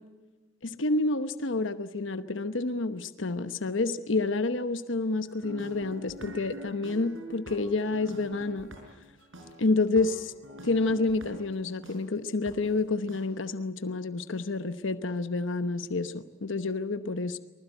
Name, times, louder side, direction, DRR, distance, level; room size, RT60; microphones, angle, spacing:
voice 1, 0.6-8.7 9.6-10.3 10.6-17.4, left 3 dB, 75° left, 11 dB, 1.0 m, -29 dB
sound 1, 5.2-12.0 12.5-12.6 13.1-13.2, equal, 80° right, 5.7 m, -45 dB
24.5 x 20.0 x 9.1 m, 1.2 s
head